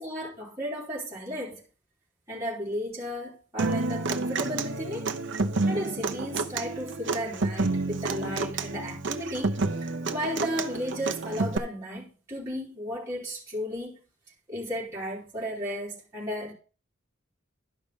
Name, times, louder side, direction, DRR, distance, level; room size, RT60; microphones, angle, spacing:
voice 1, 0.0-1.6 2.3-5.1 5.7-14.0 14.5-16.5, equal, 15° right, 3.4 m, -34 dB
Human voice / Acoustic guitar, 3.6-11.6, right 3 dB, 65° right, 0.8 m, -29 dB
12.0 x 5.3 x 5.4 m
head